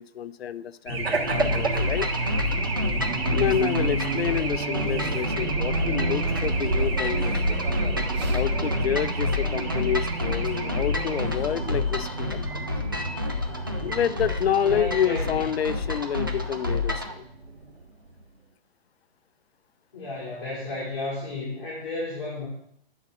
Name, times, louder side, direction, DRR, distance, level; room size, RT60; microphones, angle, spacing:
voice 1, 0.0-2.1 3.3-7.6 8.3-12.7 13.8-17.2, left 9 dB, 85° left, 13 dB, 0.7 m, -28 dB
Race car auto racing / Alarm, 0.9-17.8, right 3 dB, 80° right, 2.0 m, -29 dB
sound 1, 1.3-17.1, left 3 dB, 25° right, 0.3 m, -30 dB
voice 2, 14.6-15.4 19.9-22.5, left 2 dB, 25° left, -6 dB, 2.2 m, -33 dB
8.8 x 4.1 x 6.1 m, 0.70 s
hypercardioid pair, 175°, 31 cm